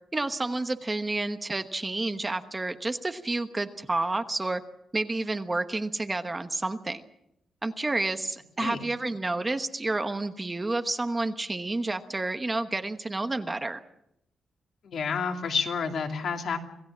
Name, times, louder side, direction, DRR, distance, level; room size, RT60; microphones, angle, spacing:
voice 1, 0.1-4.6 4.9-7.0 7.6-13.8, right 2 dB, 20° right, 8 dB, 1.1 m, -30 dB
voice 2, 14.8-16.6, left 5 dB, 65° left, 3 dB, 2.9 m, -29 dB
26.5 x 17.0 x 7.4 m, 0.81 s
wide cardioid pair, 135°, 0 cm